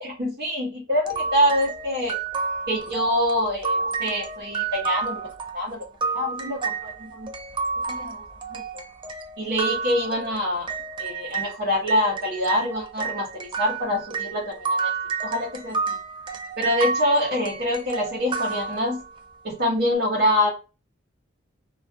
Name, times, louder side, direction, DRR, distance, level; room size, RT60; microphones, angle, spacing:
voice 1, 0.0-2.2 2.7-5.2 5.5-5.8 6.1-7.3 7.9-8.2 8.5-8.8 9.4-10.7 11.0-14.9 15.2-16.0 16.6-19.0 19.4-20.5, left 1 dB, 50° right, -3 dB, 0.7 m, -25 dB
sound 1, 1.1-11.5 11.9-19.2, right 5 dB, 25° right, 0.3 m, -30 dB
2.3 x 2.3 x 2.4 m, 0.31 s
head